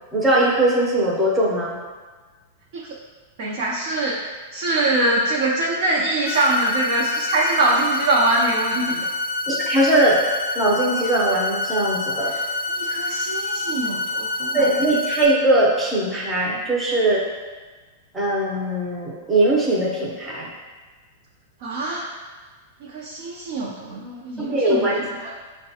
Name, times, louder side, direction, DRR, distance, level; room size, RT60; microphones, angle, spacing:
voice 1, 0.1-1.8 9.5-10.2 10.6-12.3 14.5-17.2 18.1-20.5 24.4-25.0, right 1 dB, 10° right, -5 dB, 0.6 m, -20 dB
voice 2, 3.4-9.1 12.2-12.4 12.7-14.6 21.6-22.1 22.8-24.9 25.2-25.3, right 2 dB, 60° right, -4 dB, 0.6 m, -23 dB
sound 1, 6.3-15.3, left 2 dB, 45° left, 0.6 m, -27 dB
6.2 x 2.2 x 2.8 m, 1.4 s
supercardioid pair, 140°, 0 cm